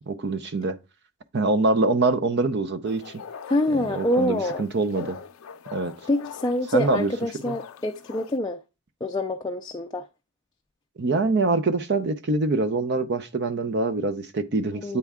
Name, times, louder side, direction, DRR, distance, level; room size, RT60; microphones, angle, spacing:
voice 1, 0.1-0.8 1.3-3.1 3.7-5.2 5.7-5.9 6.7-7.1 7.5-7.6 11.0-15.0, right 3 dB, 50° right, 0.6 m, -24 dB
sound 1, 2.8-8.4, left 7 dB, 75° left, 0.5 m, -42 dB
voice 2, 3.5-4.6 6.1-8.6 9.0-10.1 14.8-15.0, left 1 dB, 20° left, 0.4 m, -26 dB
8.3 x 4.4 x 3.6 m
head